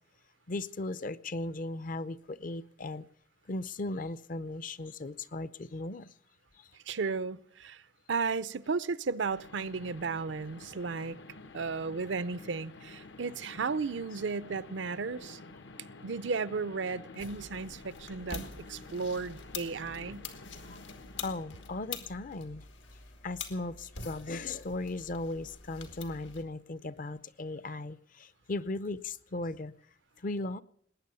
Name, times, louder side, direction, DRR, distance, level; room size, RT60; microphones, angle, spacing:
voice 1, 0.5-3.1 3.5-6.1 6.6-6.7 20.6-20.8 21.2-22.6 23.2-29.7 30.2-30.6, left 2 dB, 50° left, 0.6 m, -37 dB
voice 2, 6.9-7.8 8.1-11.2 11.5-15.4 16.0-20.2, right 4 dB, 80° right, 0.6 m, -34 dB
sound 1, 8.6-8.7 9.2-22.3, left 3 dB, 70° left, 0.9 m, -50 dB
sound 2, 17.2-26.4, left 5 dB, 90° left, 2.2 m, -46 dB
19.5 x 9.7 x 6.9 m
head